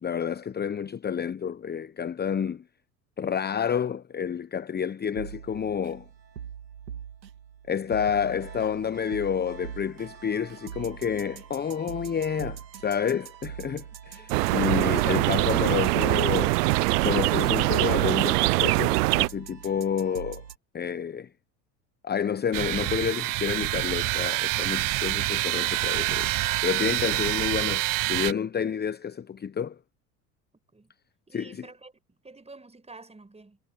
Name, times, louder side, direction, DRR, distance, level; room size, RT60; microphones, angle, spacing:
voice 1, 0.0-2.6 3.2-6.0 7.7-16.6 17.0-20.4 20.7-21.3 22.0-26.3 26.6-29.8 31.3-31.6, left 7 dB, 20° left, 1.0 m, -29 dB
sound 1, 5.2-20.6, right 8 dB, 85° right, 2.7 m, -42 dB
birds by the river int he woods, 14.3-19.3, right 22 dB, 70° right, 0.6 m, -23 dB
sound 2, 22.5-28.3, right 19 dB, 40° right, 0.9 m, -27 dB
voice 2, 31.3-33.6, right 3 dB, 15° right, 5.8 m, -49 dB
hypercardioid pair, 75°, 49 cm